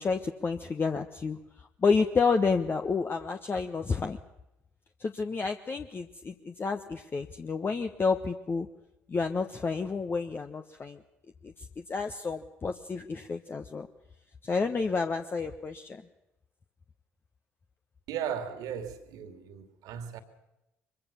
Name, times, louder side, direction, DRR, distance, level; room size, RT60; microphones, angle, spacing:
voice 1, 0.0-4.2 5.0-8.7 9.1-11.0 11.4-11.5 11.9-13.9 14.4-16.0, left 4 dB, 30° left, 1.3 m, -30 dB
voice 2, 18.1-20.2, right 8 dB, 65° right, 2.6 m, -36 dB
23.5 x 23.0 x 7.0 m
figure-of-eight pair, 50°, 7 cm